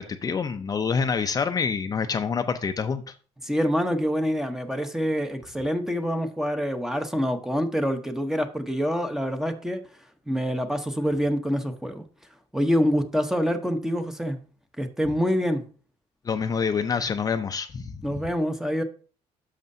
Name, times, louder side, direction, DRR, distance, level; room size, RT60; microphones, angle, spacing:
voice 1, 0.0-3.1 16.2-17.9, left 5 dB, 30° left, 7 dB, 0.5 m, -27 dB
voice 2, 3.4-9.8 10.3-12.0 12.5-14.4 14.8-15.6 18.0-18.8, equal, 5° right, 7 dB, 0.9 m, -26 dB
10.5 x 6.5 x 2.7 m, 0.41 s
cardioid pair, 115°, 12 cm